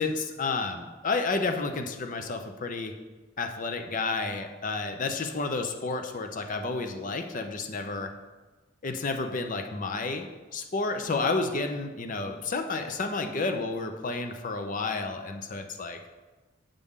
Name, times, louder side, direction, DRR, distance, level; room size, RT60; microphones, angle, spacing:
voice 1, 0.0-2.9 3.4-8.1 8.8-16.0, left 3 dB, 45° left, 6 dB, 0.6 m, -31 dB
8.3 x 5.3 x 3.6 m, 1.3 s
head